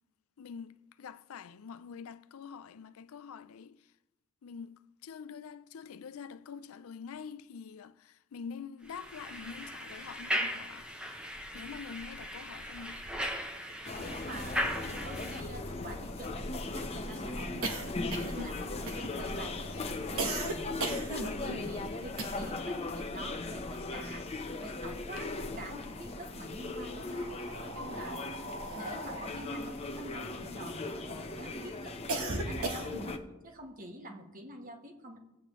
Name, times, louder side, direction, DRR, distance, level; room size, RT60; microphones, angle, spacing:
voice 1, 0.4-3.8 4.4-10.9 11.5-13.1, left 6 dB, 80° left, 0.4 m, -46 dB
sound 1, 8.9-15.4, equal, 5° right, 0.8 m, -37 dB
sound 2, 13.8-33.2, left 2 dB, 30° left, 0.8 m, -38 dB
voice 2, 14.0-14.6 15.0-17.8 18.2-20.7 21.1-24.3 24.6-27.3 27.6-28.2 28.7-32.0 32.4-33.2 33.4-35.2, right 1 dB, 40° right, 1.4 m, -47 dB
sound 3, 15.7-22.7 23.0-24.6 24.9-25.9 26.6-31.1 31.5-33.2, right 2 dB, 80° right, 1.2 m, -39 dB
17.5 x 8.4 x 3.1 m
head